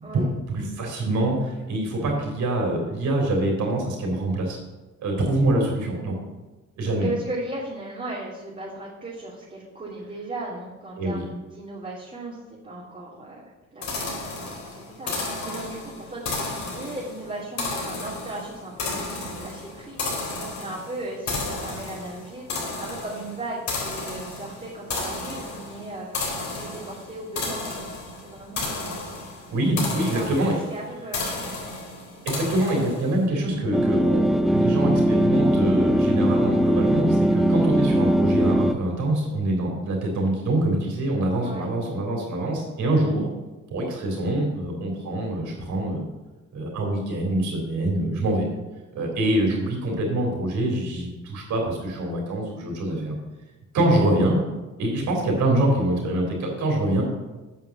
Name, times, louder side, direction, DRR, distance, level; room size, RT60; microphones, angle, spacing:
voice 1, 0.1-4.6 5.0-6.1 6.8-7.1 11.0-11.2 29.5-30.5 32.2-43.3 43.7-46.0 46.5-48.4 48.9-53.1 53.7-54.4 54.8-57.0, right 1 dB, 70° right, 0 dB, 3.8 m, -25 dB
voice 2, 7.0-22.5 22.8-26.2 26.6-27.9 28.2-29.0 30.1-31.6 41.4-41.7, right 2 dB, 25° right, -6 dB, 2.6 m, -37 dB
sound 1, 13.8-33.2, left 3 dB, 65° left, 3.6 m, -33 dB
sound 2, 33.7-38.7, right 1 dB, ahead, 0.3 m, -20 dB
8.6 x 5.8 x 7.2 m, 1.1 s
cardioid pair, 90°, 30 cm